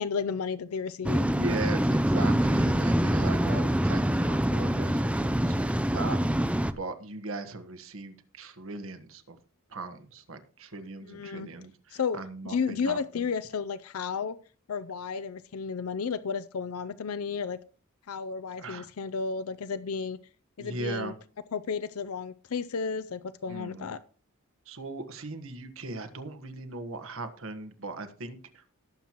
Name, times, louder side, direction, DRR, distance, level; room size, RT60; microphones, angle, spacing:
voice 1, 0.0-1.3 11.0-11.5 11.9-12.2 12.4-14.4 14.7-17.6 18.1-20.2 20.6-21.1 21.5-24.0, left 5 dB, 80° left, 14 dB, 0.5 m, -32 dB
Waves surf, 1.0-6.7, equal, 5° right, 0.5 m, -25 dB
voice 2, 1.2-9.4 9.7-13.3 18.6-18.9 20.6-21.2 23.5-23.9 24.7-28.8, right 3 dB, 65° right, 8 dB, 1.4 m, -39 dB
18.0 x 7.4 x 3.0 m, 0.40 s
head